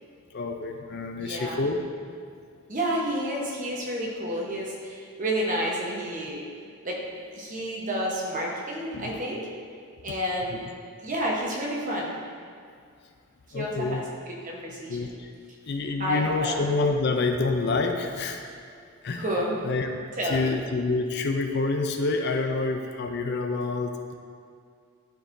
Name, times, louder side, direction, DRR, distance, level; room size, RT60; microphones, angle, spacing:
voice 1, 0.3-1.8 8.9-9.2 10.1-10.2 10.5-10.6 13.5-14.0 14.9-15.3 15.7-18.4 19.0-19.2 19.6-19.9 20.3-24.1, left 3 dB, 50° left, 4 dB, 0.5 m, -27 dB
voice 2, 1.2-1.7 2.7-6.4 6.8-7.0 7.3-9.5 10.0-10.6 11.0-12.1 13.5-15.1 16.0-16.6 19.2-19.6 20.2-20.5, equal, 35° right, -3 dB, 1.1 m, -30 dB
12.0 x 4.6 x 2.7 m, 2.3 s
head